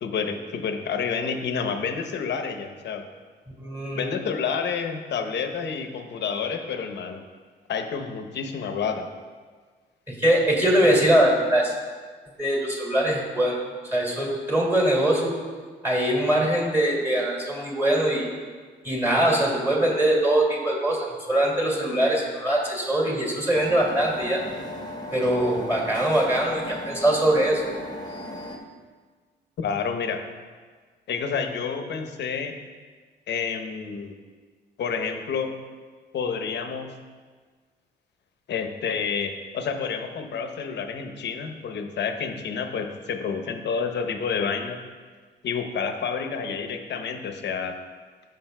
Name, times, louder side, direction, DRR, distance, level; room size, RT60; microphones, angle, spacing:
voice 1, 0.0-3.0 3.9-7.2 7.7-9.1 29.6-30.2 31.1-32.6 33.3-34.1 34.8-35.5 36.1-36.9 38.5-44.8 45.4-47.7, left 6 dB, 60° left, 6 dB, 0.8 m, -29 dB
voice 2, 3.6-4.1 10.1-11.7 12.4-13.6 13.8-15.3 15.8-18.3 18.8-24.4 25.1-27.6, right 1 dB, 10° right, -2 dB, 2.2 m, -22 dB
sound 1, 23.5-28.6, left 1 dB, 20° left, 1.0 m, -36 dB
15.0 x 5.5 x 2.2 m, 1.5 s
cardioid pair, 90°, 20 cm